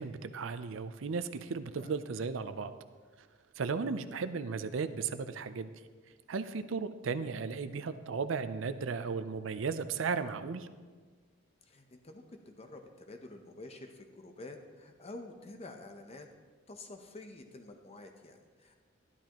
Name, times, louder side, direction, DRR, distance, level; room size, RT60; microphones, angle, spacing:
voice 1, 0.0-2.7 3.2-3.3 3.6-5.7 6.3-10.7, right 5 dB, 75° right, 11 dB, 0.5 m, -35 dB
voice 2, 11.6-16.3 16.7-18.8, left 2 dB, 30° left, 5 dB, 0.7 m, -49 dB
12.0 x 11.5 x 2.9 m, 1.5 s
head